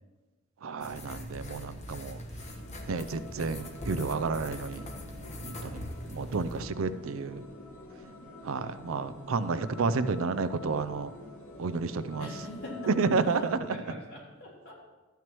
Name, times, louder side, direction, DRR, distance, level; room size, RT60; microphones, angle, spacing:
voice 1, 0.6-2.2 2.9-4.9 5.4-5.8 6.1-7.5 8.4-11.1 11.6-12.3 12.9-13.6 13.9-14.0, right 4 dB, 70° right, 14 dB, 0.5 m, -31 dB
sound 1, 0.8-6.6, left 1 dB, 35° left, 1.2 m, -42 dB
sound 2, 2.4-13.6, left 2 dB, 85° left, 2.4 m, -46 dB
voice 2, 12.2-13.1 13.7-14.7, equal, 60° left, -4 dB, 3.9 m, -43 dB
13.5 x 9.2 x 3.0 m, 1.2 s
head